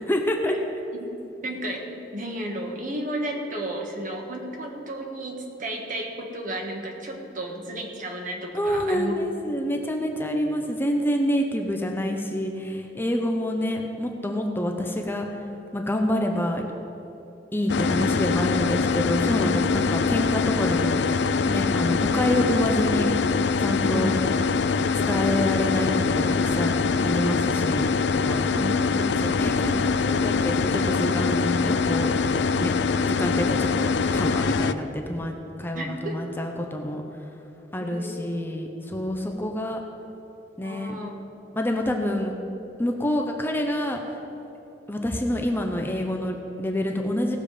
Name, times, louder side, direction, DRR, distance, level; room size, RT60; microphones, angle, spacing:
voice 1, 0.1-0.5 8.5-15.3 15.7-16.6 17.5-23.1 23.6-24.1 25.1-28.4 29.2-32.2 32.6-32.7 33.0-37.0 37.7-39.8 40.6-40.9 41.5-42.3 42.8-44.2 44.9-47.4, left 1 dB, 10° left, 2 dB, 0.7 m, -27 dB
voice 2, 1.4-9.1 23.8-24.2 28.4-29.4 35.7-36.2 37.8-38.5 40.6-41.1, right 1 dB, 50° right, 1 dB, 1.6 m, -33 dB
sound 1, 17.7-34.7, left 4 dB, 70° left, 0.4 m, -23 dB
17.5 x 7.0 x 5.1 m, 3.0 s
head